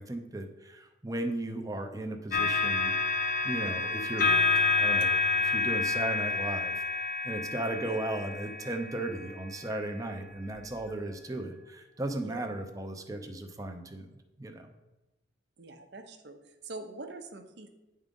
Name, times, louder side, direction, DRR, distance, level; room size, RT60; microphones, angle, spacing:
voice 1, 0.0-14.1 14.4-14.7, right 1 dB, 20° right, 5 dB, 0.6 m, -36 dB
sound 1, 2.3-9.8 10.5-10.7, left 4 dB, 50° left, 0.9 m, -29 dB
voice 2, 15.6-16.4 16.6-17.7, right 3 dB, 65° right, 6 dB, 0.8 m, -44 dB
9.4 x 3.7 x 5.3 m, 1.0 s
head